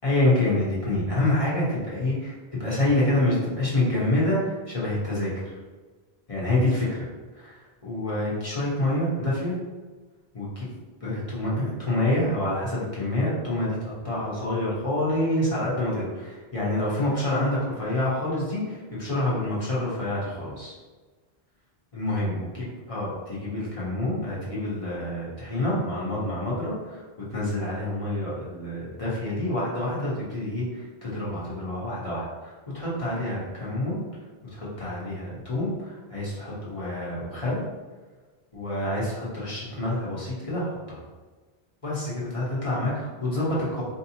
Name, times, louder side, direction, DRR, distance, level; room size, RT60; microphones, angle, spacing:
voice 1, 0.0-2.3 2.6-4.4 4.7-5.5 6.3-6.9 7.4-9.5 10.3-10.6 11.0-20.7 21.9-27.0 27.3-34.0 34.5-37.7 38.5-41.0 41.8-43.8, left 1 dB, 30° left, -7 dB, 1.2 m, -27 dB
4.5 x 2.8 x 2.9 m, 1.3 s
omnidirectional pair, 1.1 m